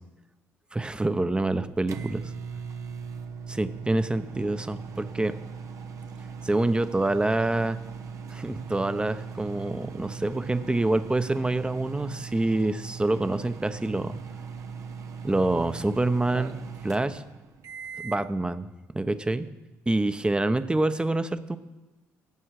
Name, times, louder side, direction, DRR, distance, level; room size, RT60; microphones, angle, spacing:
voice 1, 0.7-2.3 3.5-5.3 6.4-7.8 8.3-14.2 15.2-16.6 16.8-17.2 18.0-18.7 18.9-19.5 19.9-21.6, right 2 dB, 15° right, 11 dB, 0.9 m, -26 dB
sound 1, 1.3-18.3, right 6 dB, 60° right, 0.9 m, -39 dB
16.5 x 7.6 x 4.9 m, 1.2 s
supercardioid pair, 60°, 6 cm